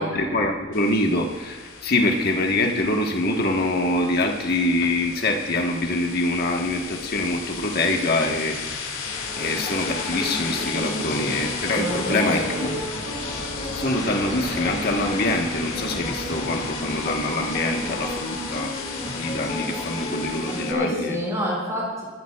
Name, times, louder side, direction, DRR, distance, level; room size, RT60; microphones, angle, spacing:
voice 1, 0.0-8.8 9.4-12.7 13.7-18.7 19.2-21.1, left 2 dB, 50° left, 2 dB, 1.4 m, -24 dB
sound 1, 0.7-20.7, left 4 dB, 85° left, 2.4 m, -34 dB
sound 2, 9.0-20.7, left 1 dB, 30° left, 2.1 m, -33 dB
voice 2, 11.7-12.7 20.7-22.0, equal, 15° right, -5 dB, 5.5 m, -27 dB
25.0 x 14.5 x 2.4 m, 1.4 s
head